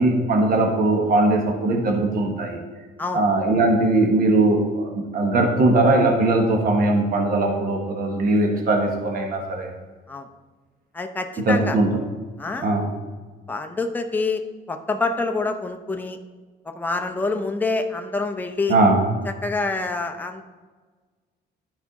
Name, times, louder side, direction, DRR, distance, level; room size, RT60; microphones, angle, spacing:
voice 1, 0.0-2.6 3.1-9.7 11.5-11.9 12.6-12.9 18.7-19.0, right 2 dB, 55° right, 2 dB, 1.4 m, -20 dB
voice 2, 10.9-11.8 12.4-12.7 13.5-14.4 14.7-16.2 16.6-18.8 19.2-20.4, left 3 dB, 10° left, 5 dB, 0.6 m, -26 dB
12.0 x 4.7 x 4.0 m, 1.3 s
cardioid pair, 135°, 17 cm